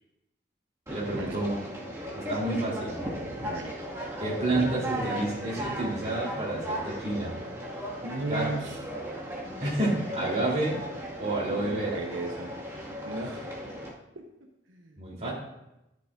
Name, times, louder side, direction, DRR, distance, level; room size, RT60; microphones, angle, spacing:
Conversation, 0.9-13.9, right 1 dB, 15° right, 2.0 m, -36 dB
voice 1, 0.9-1.6 2.1-3.0 4.2-7.4 8.3-8.5 9.6-10.8 11.2-12.0 15.0-15.3, right 2 dB, 35° right, -5 dB, 3.5 m, -29 dB
voice 2, 3.4-3.7 8.0-8.8 11.5-12.5 13.0-13.4 14.1-15.3, right 2 dB, 90° right, 2 dB, 1.1 m, -36 dB
13.0 x 10.5 x 2.6 m, 0.89 s
head